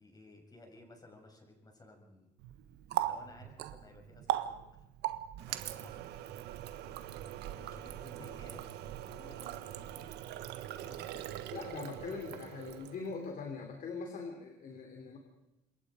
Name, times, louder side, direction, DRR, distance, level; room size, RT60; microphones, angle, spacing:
voice 1, 0.0-2.3 3.0-4.9 5.3-6.1 7.6-8.6 9.0-10.1 10.8-11.1, left 1 dB, 25° left, 2 dB, 7.0 m, -56 dB
Water tap faucet, 2.4-13.2, right 12 dB, 80° right, 1.4 m, -40 dB
voice 2, 11.5-15.2, left 4 dB, 55° left, 3 dB, 3.4 m, -42 dB
27.0 x 23.0 x 5.1 m, 0.93 s
cardioid pair, 110°, 17 cm